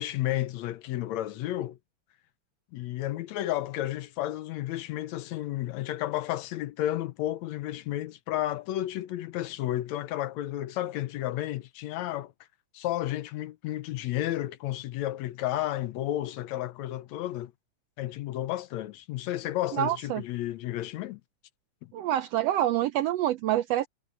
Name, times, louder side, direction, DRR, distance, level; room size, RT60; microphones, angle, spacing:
voice 1, 0.0-1.8 2.7-12.3 12.7-17.5 18.0-21.2 21.8-21.9, left 14 dB, 75° left, 1.9 m, -32 dB
voice 2, 19.7-20.2 21.9-23.9, right 12 dB, 80° right, 1.5 m, -26 dB
omnidirectional pair, 3.4 m